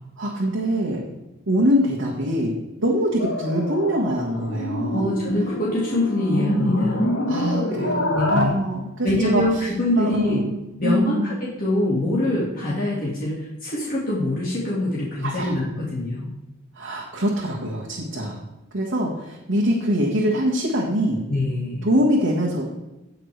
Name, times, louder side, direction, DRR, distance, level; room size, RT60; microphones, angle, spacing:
voice 1, 0.2-1.0 1.5-5.1 7.3-9.4 10.0-10.5 10.8-11.4 15.2-15.6 16.7-18.4 18.7-21.2 21.8-22.7, equal, 65° right, -5 dB, 1.7 m, -23 dB
sound 1, 3.2-8.5, left 1 dB, 70° left, 1.7 m, -26 dB
voice 2, 4.9-7.0 8.1-8.6 9.0-10.4 10.8-16.3 21.3-21.9, left 1 dB, 45° left, -6 dB, 2.1 m, -24 dB
17.5 x 5.8 x 3.4 m, 1.0 s
head